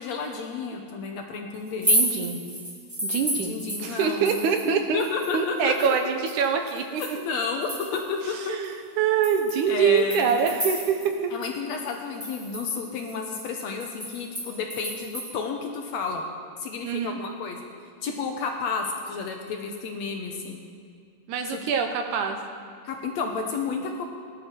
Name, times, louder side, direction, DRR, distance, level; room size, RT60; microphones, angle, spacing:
voice 1, 0.0-1.9 3.3-6.2 7.0-8.6 9.7-10.4 11.3-16.2 16.6-17.6 18.0-20.6 21.5-21.6 22.8-24.0, left 4 dB, 65° left, 3 dB, 2.0 m, -31 dB
sound 1, 1.7-4.7 5.0-8.2 8.6-8.7 9.2-11.2 11.4-11.5 11.9-15.3, equal, 5° right, 1.6 m, -31 dB
voice 2, 1.9-2.4 3.0-7.2 8.3-11.3 16.8-17.2 21.3-22.4, right 6 dB, 75° right, 5 dB, 2.4 m, -25 dB
19.0 x 11.5 x 4.5 m, 2.3 s
omnidirectional pair, 3.8 m